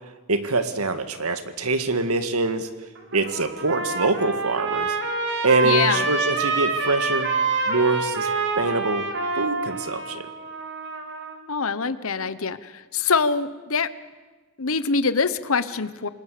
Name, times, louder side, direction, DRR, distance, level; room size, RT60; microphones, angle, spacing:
voice 1, 0.3-2.7 3.1-5.0 5.4-7.3 7.7-9.1 9.4-10.3, right 3 dB, 80° right, 9 dB, 1.9 m, -24 dB
Trumpet, 3.0-11.4, right 4 dB, 55° right, 3.2 m, -27 dB
voice 2, 5.6-6.1 11.5-13.9 14.6-16.1, left 5 dB, 65° left, 14 dB, 1.1 m, -24 dB
27.5 x 19.0 x 8.5 m, 1.3 s
head